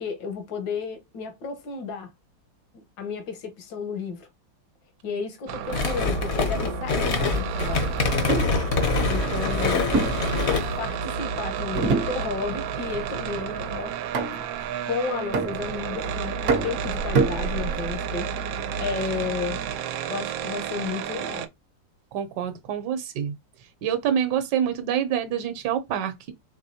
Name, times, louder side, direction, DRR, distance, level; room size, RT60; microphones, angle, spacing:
voice 1, 0.0-2.1 2.7-4.3 5.0-7.9 9.1-9.9 10.8-13.9 14.9-18.3 18.7-19.6 20.1-21.5, left 5 dB, 75° left, 1.7 m, -32 dB
sound 1, 5.5-21.5, right 6 dB, 85° right, 1.3 m, -31 dB
sound 2, 5.7-10.9, left 3 dB, 50° left, 0.8 m, -25 dB
sound 3, 8.3-8.6 9.9-11.0 11.8-12.6 12.9-13.3 14.1-14.6 15.3-16.0 16.5-17.9, right 4 dB, 55° right, 0.9 m, -26 dB
voice 2, 22.1-23.3 23.8-26.3, right 9 dB, 70° right, 1.3 m, -26 dB
4.8 x 3.5 x 2.7 m
omnidirectional pair, 2.1 m